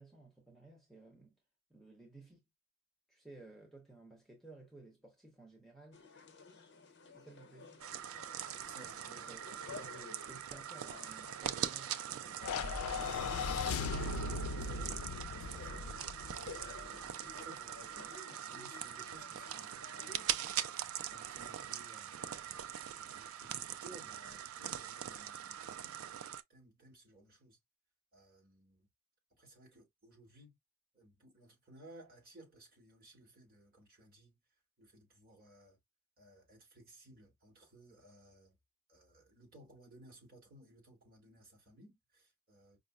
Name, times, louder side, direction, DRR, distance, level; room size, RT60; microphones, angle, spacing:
voice 1, 0.0-1.3 1.7-2.4 3.1-6.0 7.1-7.8 9.1-9.4 9.7-13.2, right 2 dB, ahead, 0.8 m, -56 dB
sound 1, 5.9-20.3, left 4 dB, 50° left, 0.7 m, -54 dB
sound 2, 7.8-26.4, right 10 dB, 75° right, 0.4 m, -42 dB
voice 2, 8.7-9.3 13.6-13.9 14.6-15.0 15.4-22.5 22.9-26.2 26.5-27.6 28.1-28.9 29.4-30.6 30.9-34.4 34.8-35.8 36.2-38.6 38.9-42.8, right 1 dB, 40° right, 1.9 m, -59 dB
sound 3, 12.4-16.8, left 4 dB, 85° left, 0.4 m, -38 dB
5.0 x 2.0 x 2.3 m
head